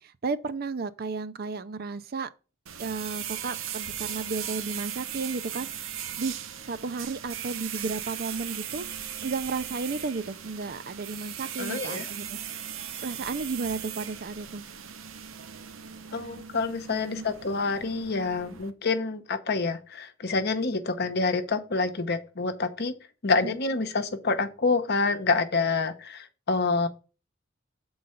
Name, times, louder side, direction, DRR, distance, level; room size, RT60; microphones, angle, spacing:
voice 1, 0.0-2.3 2.8-6.4 6.7-8.9 9.2-12.6 13.0-14.6 17.1-17.3 23.4-23.6, right 4 dB, 50° right, 0.5 m, -33 dB
sound 1, 2.7-18.7, right 9 dB, 75° right, 0.8 m, -38 dB
voice 2, 11.6-12.1 16.1-22.9 23.2-26.9, left 4 dB, 50° left, 0.9 m, -27 dB
7.6 x 3.9 x 5.6 m
head